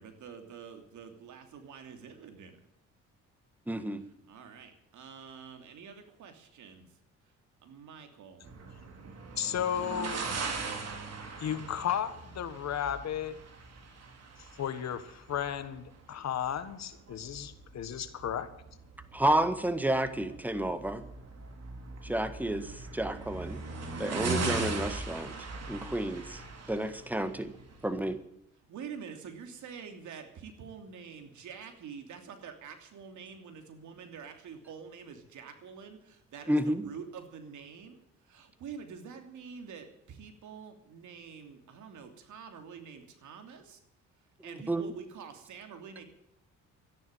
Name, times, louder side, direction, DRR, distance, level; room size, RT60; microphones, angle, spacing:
voice 1, 0.0-2.6 4.3-6.9 7.6-8.5 28.7-38.0 38.3-43.8 44.4-46.0, right 6 dB, 75° right, 6 dB, 2.9 m, -47 dB
voice 2, 3.7-4.0 19.1-21.0 22.0-23.6 24.0-25.3 25.7-26.4 26.7-27.5 27.8-28.2 36.5-36.8 44.5-44.9, right 1 dB, 5° right, 10 dB, 1.6 m, -30 dB
sound 1, 8.4-28.1, right 3 dB, 55° right, 3.8 m, -40 dB
voice 3, 9.4-10.2 11.4-13.4 14.6-18.5, left 9 dB, 60° left, 12 dB, 1.6 m, -34 dB
13.5 x 11.0 x 9.1 m, 0.78 s
cardioid pair, 90°, 30 cm